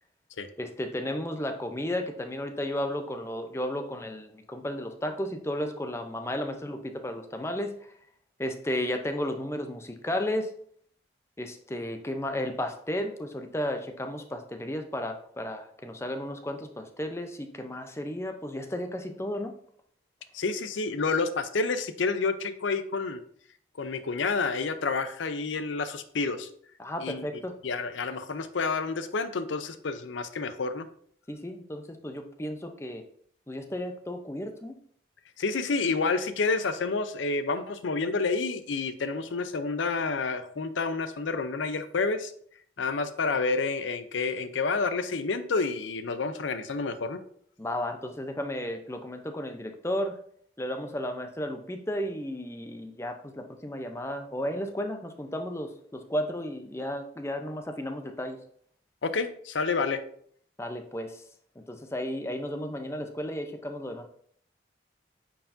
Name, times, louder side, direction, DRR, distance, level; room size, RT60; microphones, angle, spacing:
voice 1, 0.6-7.8 8.4-10.5 11.4-19.5 26.8-27.5 31.3-33.0 33.5-34.8 47.6-50.2 50.6-58.4 60.6-61.2 61.7-64.1, left 1 dB, 15° left, 6 dB, 0.6 m, -33 dB
voice 2, 20.3-23.2 23.8-26.5 27.0-27.2 27.6-30.9 35.4-42.3 42.8-47.2 59.0-60.0, left 4 dB, 80° left, 11 dB, 0.6 m, -29 dB
9.0 x 4.7 x 2.6 m, 0.62 s
head